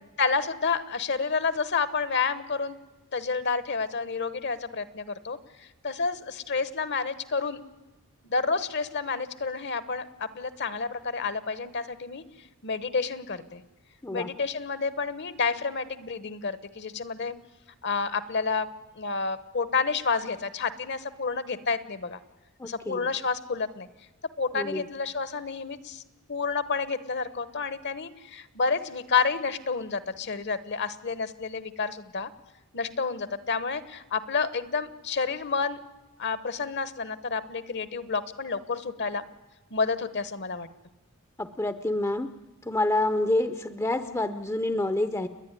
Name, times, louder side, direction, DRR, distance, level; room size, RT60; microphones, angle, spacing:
voice 1, 0.2-2.8 3.1-7.6 8.2-12.2 12.6-13.6 14.1-17.4 17.8-18.7 19.0-22.2 22.6-23.9 24.4-26.0 26.3-32.3 32.7-35.8 36.2-39.2 39.7-40.7, left 4 dB, 50° left, 15 dB, 1.1 m, -29 dB
voice 2, 22.6-23.1 24.5-24.9 41.4-42.3 42.6-45.3, left 2 dB, 15° left, 11 dB, 0.7 m, -27 dB
30.0 x 10.5 x 9.8 m, 1.2 s
head